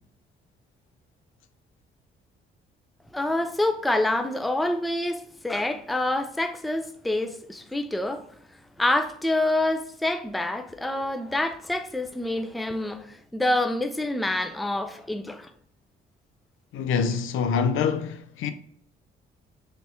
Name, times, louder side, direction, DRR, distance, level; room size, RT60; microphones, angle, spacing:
voice 1, 3.1-8.2 8.8-15.5, left 1 dB, ahead, 0.4 m, -27 dB
voice 2, 16.7-18.5, left 6 dB, 75° left, 0.5 m, -25 dB
3.4 x 2.7 x 4.2 m
cardioid pair, 80°, 21 cm